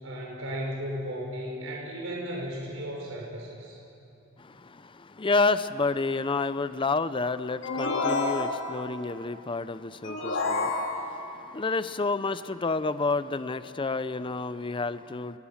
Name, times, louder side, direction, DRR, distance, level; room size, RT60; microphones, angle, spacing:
voice 1, 0.0-3.8, equal, 65° right, -2 dB, 5.5 m, -35 dB
voice 2, 4.4-15.4, left 3 dB, 25° left, 13 dB, 0.5 m, -30 dB
sound 1, 7.6-9.0 10.0-11.4, left 3 dB, 60° left, 2.5 m, -29 dB
28.0 x 23.0 x 7.3 m, 2.7 s
head